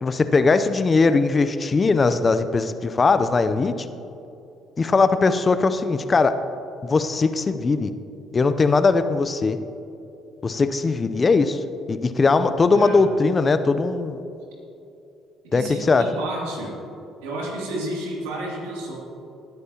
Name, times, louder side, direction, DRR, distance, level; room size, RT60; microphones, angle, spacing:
voice 1, 0.0-3.7 4.8-6.4 6.8-7.9 8.3-9.6 10.4-11.6 11.9-14.2 15.5-16.1, left 4 dB, 35° left, 11 dB, 0.7 m, -20 dB
voice 2, 12.7-13.0 15.4-16.8 17.2-19.0, right 1 dB, 85° right, -3 dB, 2.8 m, -31 dB
18.5 x 9.4 x 2.9 m, 2.7 s
hypercardioid pair, 65°, 0 cm